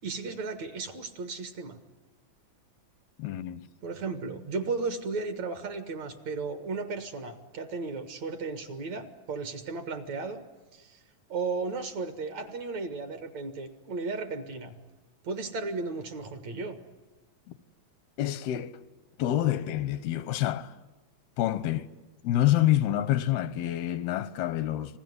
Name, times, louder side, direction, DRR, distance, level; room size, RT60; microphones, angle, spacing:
voice 1, 0.0-1.8 3.8-10.4 10.7-11.0 11.3-14.7 15.2-16.8, right 4 dB, 55° right, 2.5 m, -35 dB
voice 2, 3.2-3.7 18.2-18.8 19.2-20.7 21.4-21.9 22.2-25.0, left 13 dB, 90° left, 3.0 m, -27 dB
30.0 x 20.5 x 9.5 m
omnidirectional pair, 4.3 m